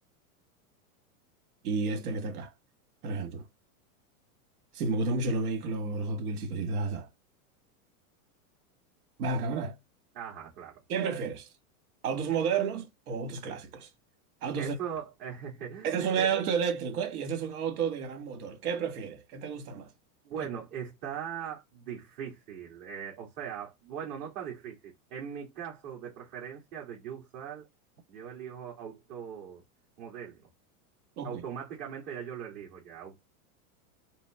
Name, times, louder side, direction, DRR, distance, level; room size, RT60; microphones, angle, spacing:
voice 1, 1.6-2.5 3.0-3.4 4.7-7.1 9.2-9.7 10.9-11.5 12.0-13.9 14.4-14.7 15.8-19.9 31.2-31.4, right 5 dB, 75° right, 1.6 m, -31 dB
voice 2, 10.1-10.8 14.6-16.3 20.2-27.7 28.1-29.6 30.0-30.4 31.2-33.2, right 8 dB, 45° right, 2.0 m, -40 dB
5.4 x 2.0 x 4.8 m
supercardioid pair, 155°, 45 cm